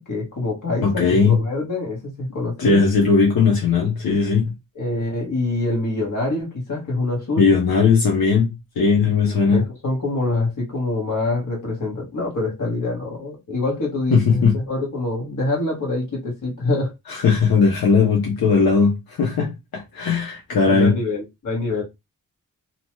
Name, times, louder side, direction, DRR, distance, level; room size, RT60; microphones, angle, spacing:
voice 1, 0.0-2.8 4.7-7.5 9.2-16.9 20.7-21.8, left 2 dB, 60° left, 1.3 m, -25 dB
voice 2, 0.8-1.4 2.6-4.5 7.4-9.6 14.1-14.6 17.1-20.9, left 5 dB, 85° left, 0.8 m, -18 dB
2.8 x 2.2 x 3.0 m
wide cardioid pair, 170°, 35 cm